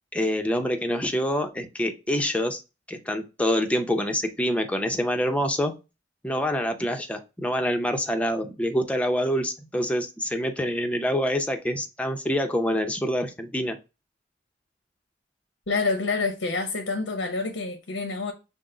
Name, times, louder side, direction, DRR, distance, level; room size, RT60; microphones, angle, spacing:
voice 1, 0.1-2.6 2.9-5.7 6.2-13.8, equal, 5° left, 0.6 m, -26 dB
voice 2, 15.7-18.3, left 3 dB, 85° left, 0.9 m, -27 dB
6.1 x 2.1 x 3.8 m
head